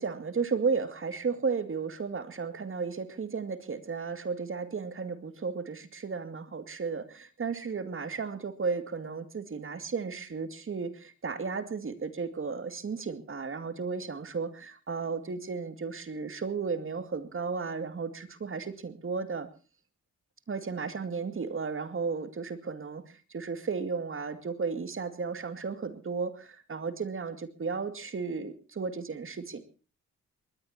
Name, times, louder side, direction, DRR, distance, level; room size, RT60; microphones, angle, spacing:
voice 1, 0.0-19.5 20.5-29.6, right 5 dB, 45° right, 11 dB, 2.4 m, -34 dB
22.0 x 20.0 x 2.9 m, 0.35 s
cardioid pair, 90°, 30 cm